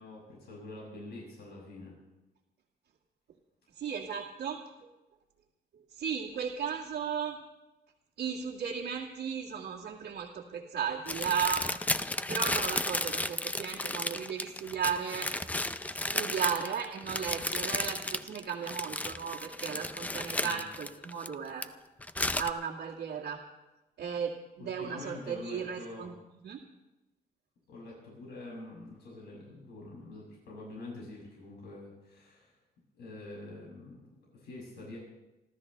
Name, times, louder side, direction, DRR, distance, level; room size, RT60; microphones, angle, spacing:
voice 1, 0.0-2.0 20.4-20.6 24.6-26.1 27.7-32.5 33.0-35.0, left 2 dB, 90° left, -4 dB, 7.0 m, -46 dB
voice 2, 3.8-4.9 5.7-7.4 8.2-11.7 12.3-15.3 15.9-21.7 22.4-23.4 24.0-26.1 26.4-26.6, right 7 dB, 85° right, -3 dB, 2.0 m, -35 dB
sound 1, 11.1-21.6 22.0-22.5, left 2 dB, 10° left, 0.5 m, -33 dB
29.0 x 13.0 x 3.3 m, 1.0 s
cardioid pair, 140°, 17 cm